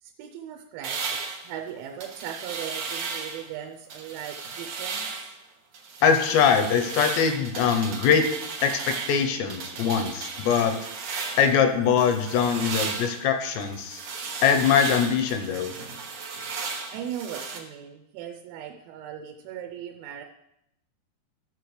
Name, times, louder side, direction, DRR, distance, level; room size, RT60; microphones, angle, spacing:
voice 1, 0.0-5.3 16.9-20.2, right 9 dB, 90° right, 3 dB, 3.0 m, -38 dB
sound 1, 0.8-3.5 3.9-5.4 5.7-11.6 12.0-17.6, right 5 dB, 75° right, 1.6 m, -35 dB
voice 2, 6.0-8.3 8.6-10.8 11.4-14.0 14.4-15.7, left 7 dB, 80° left, 7 dB, 2.7 m, -22 dB
14.0 x 6.9 x 3.2 m, 0.80 s
omnidirectional pair, 5.3 m